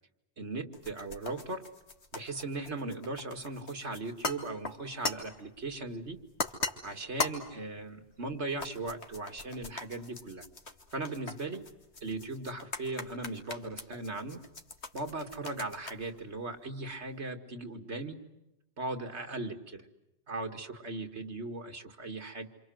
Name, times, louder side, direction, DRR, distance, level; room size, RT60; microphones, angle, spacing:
voice 1, 0.4-1.7 2.1-6.2 6.8-10.4 10.9-11.7 12.0-14.4 14.9-18.2 18.8-19.9 20.3-22.5, right 2 dB, 85° right, 6 dB, 2.6 m, -38 dB
sound 1, 0.7-17.2, left 3 dB, 75° left, 2.5 m, -41 dB
28.0 x 27.0 x 7.9 m, 0.95 s
omnidirectional pair, 1.1 m